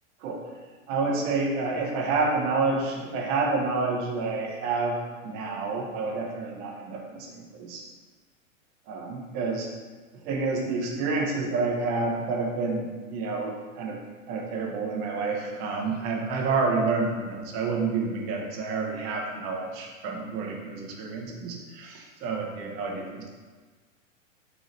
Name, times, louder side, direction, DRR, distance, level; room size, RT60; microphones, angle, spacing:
voice 1, 0.9-7.8 8.9-9.7 10.2-14.0 14.3-23.3, right 3 dB, 25° right, 0 dB, 0.5 m, -29 dB
3.9 x 3.7 x 3.1 m, 1.4 s
hypercardioid pair, 135°, 40 cm